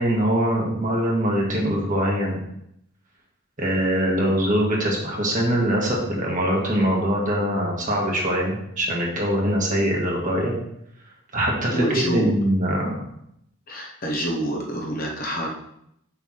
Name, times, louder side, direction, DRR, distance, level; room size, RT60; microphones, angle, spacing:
voice 1, 0.0-2.4 3.6-10.5 11.3-13.0, equal, 35° right, -2 dB, 1.7 m, -23 dB
voice 2, 11.7-12.4 13.7-15.5, right 1 dB, 40° left, 0 dB, 1.0 m, -26 dB
6.9 x 3.5 x 5.8 m, 0.76 s
head